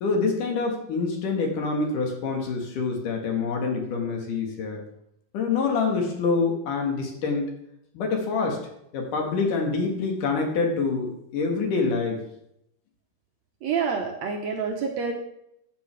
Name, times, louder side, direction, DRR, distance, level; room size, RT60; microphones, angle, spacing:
voice 1, 0.0-4.8 5.3-7.5 7.9-8.6 8.9-12.2, left 4 dB, 70° left, 2 dB, 3.1 m, -26 dB
voice 2, 13.6-15.1, right 5 dB, 70° right, 2 dB, 1.8 m, -27 dB
13.5 x 6.9 x 3.3 m, 0.78 s
omnidirectional pair, 3.9 m